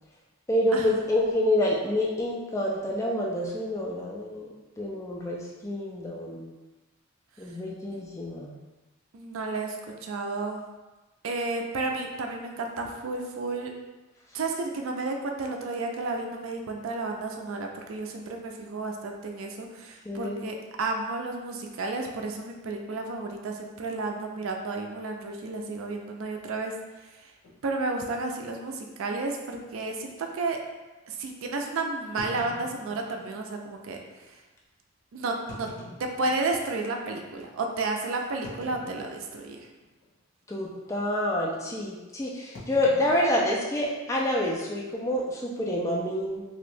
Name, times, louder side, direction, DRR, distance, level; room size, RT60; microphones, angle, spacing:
voice 1, 0.5-4.5 4.8-6.5 7.4-8.5 20.0-20.5 40.5-46.5, left 1 dB, 15° left, -3 dB, 0.3 m, -27 dB
voice 2, 9.1-10.6 11.2-13.7 14.3-26.7 27.0-27.3 27.6-30.6 31.1-34.0 35.1-35.7 36.0-39.7, right 3 dB, 70° right, 2 dB, 0.4 m, -32 dB
sound 1, 27.4-27.6 28.4-28.5 28.8-28.9 29.5-29.6 32.2-33.4 34.2-34.3 35.3-36.8 37.3-37.4 38.4-39.5 39.8-40.2 40.4-40.7 42.5-44.2, left 2 dB, 85° left, 1.0 m, -46 dB
2.9 x 2.6 x 3.3 m, 1.2 s
head